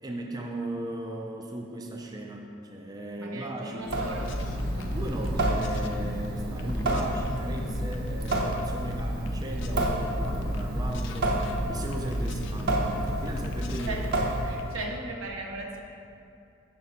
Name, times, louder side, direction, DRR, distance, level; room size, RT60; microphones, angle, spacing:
voice 1, 0.0-4.0 4.9-14.0, right 1 dB, 20° right, 1 dB, 0.4 m, -37 dB
voice 2, 3.2-4.4 13.9-14.2 14.4-15.8, right 2 dB, 85° right, 1 dB, 0.8 m, -37 dB
Water tap faucet / Sink (filling or washing) / Drip, 3.8-14.8, right 1 dB, 55° right, 0.8 m, -29 dB
sound 1, 3.9-5.9 6.2-8.6 8.9-10.6 10.9-14.8, left 2 dB, 65° left, 0.4 m, -42 dB
5.7 x 5.2 x 4.0 m, 2.6 s
head